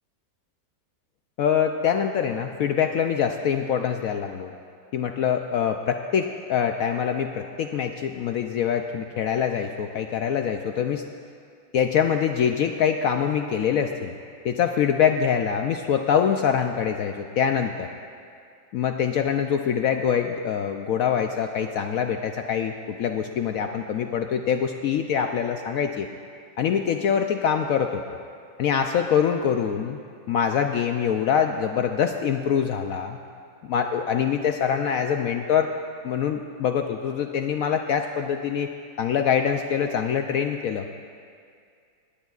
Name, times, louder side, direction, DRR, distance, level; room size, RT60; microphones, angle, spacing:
voice 1, 1.4-4.5 4.9-11.0 11.7-14.1 14.4-17.9 18.7-26.1 26.6-28.0 28.6-30.0 30.3-33.2 33.6-35.7 36.0-38.7 39.0-40.9, left 8 dB, 80° left, 5 dB, 0.7 m, -24 dB
20.0 x 17.0 x 2.4 m, 2.3 s
omnidirectional pair, 2.0 m